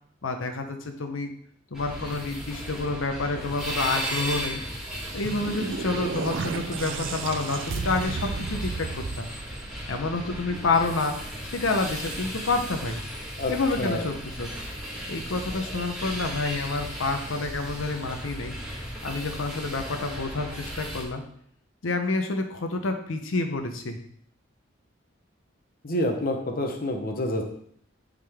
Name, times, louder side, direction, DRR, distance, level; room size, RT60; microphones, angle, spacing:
voice 1, 0.2-1.3 1.7-4.6 5.1-9.3 9.9-11.2 11.5-13.0 13.5-14.5 15.1-18.5 19.0-21.2 21.8-24.0, left 3 dB, 80° left, 5 dB, 0.7 m, -28 dB
sound 1, 1.7-21.0, equal, 5° right, 1.6 m, -36 dB
sound 2, 4.8-10.2, right 5 dB, 70° right, 0.4 m, -34 dB
voice 2, 25.8-27.4, left 1 dB, 45° left, 3 dB, 0.8 m, -27 dB
9.7 x 3.8 x 3.5 m, 0.65 s
head